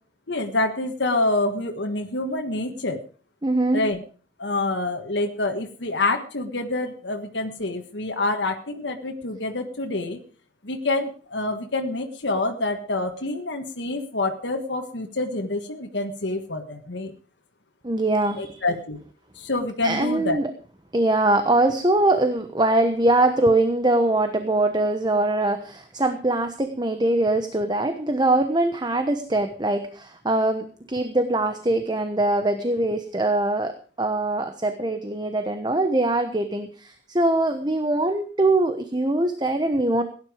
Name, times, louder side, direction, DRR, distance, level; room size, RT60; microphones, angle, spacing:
voice 1, 0.3-3.0 3.7-4.0 4.4-10.2 10.6-17.1 18.4-19.0 19.4-20.4, left 2 dB, 85° left, 3 dB, 1.6 m, -27 dB
voice 2, 3.4-3.8 17.8-18.6 19.8-20.5 20.9-40.0, right 2 dB, 25° right, 8 dB, 1.1 m, -22 dB
17.0 x 10.5 x 5.0 m, 0.42 s
head